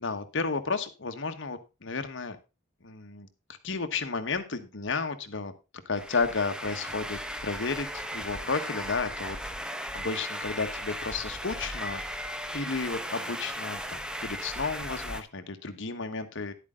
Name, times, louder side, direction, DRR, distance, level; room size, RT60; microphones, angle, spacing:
voice 1, 0.0-2.4 2.8-3.3 3.6-5.5 5.8-9.4 9.9-12.3 12.5-16.5, left 4 dB, 65° left, 8 dB, 1.3 m, -32 dB
sound 1, 6.0-15.2, equal, 5° right, 0.9 m, -37 dB
11.0 x 8.3 x 3.7 m, 0.28 s
head